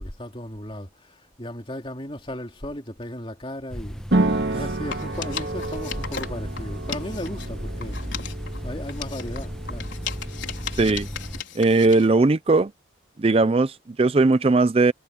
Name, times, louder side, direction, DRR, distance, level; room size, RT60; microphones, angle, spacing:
voice 1, 0.0-4.0 4.5-8.2 8.6-9.9, left 1 dB, 30° left, 3.0 m, -36 dB
sound 1, 3.7-11.4, equal, 5° left, 1.3 m, -35 dB
sound 2, 4.1-11.4, right 2 dB, 60° right, 2.0 m, -30 dB
sound 3, 4.9-7.5 7.8-12.1, left 7 dB, 75° left, 4.7 m, -36 dB
voice 2, 11.6-12.7 13.2-14.9, right 3 dB, 30° right, 0.4 m, -19 dB
head